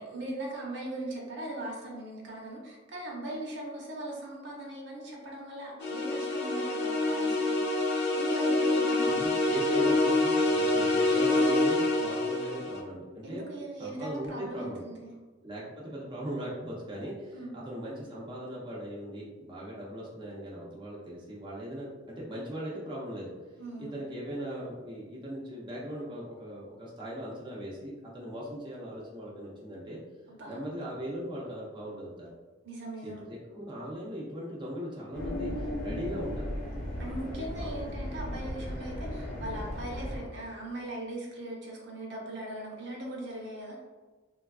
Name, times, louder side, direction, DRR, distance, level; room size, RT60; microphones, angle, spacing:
voice 1, 0.0-9.4 13.2-15.1 17.3-17.5 23.6-23.9 30.3-30.6 32.6-33.2 37.0-43.8, right 1 dB, 65° right, -2 dB, 0.7 m, -40 dB
sound 1, 5.8-12.8, left 2 dB, 60° left, 0.5 m, -26 dB
voice 2, 9.0-13.4 13.8-14.9 15.4-23.3 23.8-30.0 30.5-32.3 33.0-36.6 37.2-37.8, equal, 25° right, -6 dB, 0.5 m, -39 dB
sound 2, 35.1-40.2, left 1 dB, 40° left, 0.8 m, -36 dB
3.2 x 2.3 x 2.2 m, 1.3 s
head